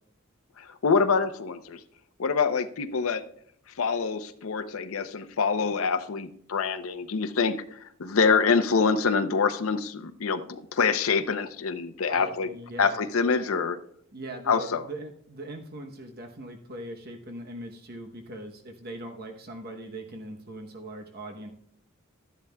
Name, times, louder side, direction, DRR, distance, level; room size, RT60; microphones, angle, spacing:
voice 1, 0.6-1.8 2.2-3.2 3.8-12.5 12.8-13.8 14.5-14.8, left 5 dB, 85° left, 8 dB, 0.7 m, -25 dB
voice 2, 12.1-13.0 14.1-21.5, right 1 dB, 50° right, 3 dB, 0.9 m, -40 dB
12.5 x 10.5 x 2.3 m, 0.66 s
head